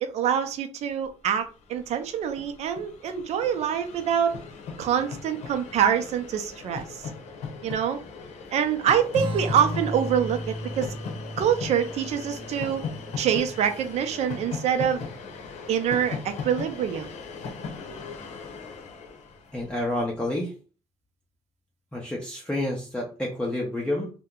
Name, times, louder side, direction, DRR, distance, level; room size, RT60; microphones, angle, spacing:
voice 1, 0.0-4.4 4.8-6.8 7.6-8.0 8.5-10.9 11.4-12.8 13.2-15.0 15.7-17.1, right 8 dB, 65° right, 0.6 m, -25 dB
Train, 1.4-1.5 1.6-20.0, left 5 dB, 70° left, 0.8 m, -39 dB
sound 1, 9.1-14.2, right 1 dB, 40° right, 0.9 m, -35 dB
voice 2, 19.5-20.5 21.9-24.1, left 1 dB, 5° left, 0.6 m, -29 dB
2.8 x 2.2 x 3.6 m
cardioid pair, 140°, 12 cm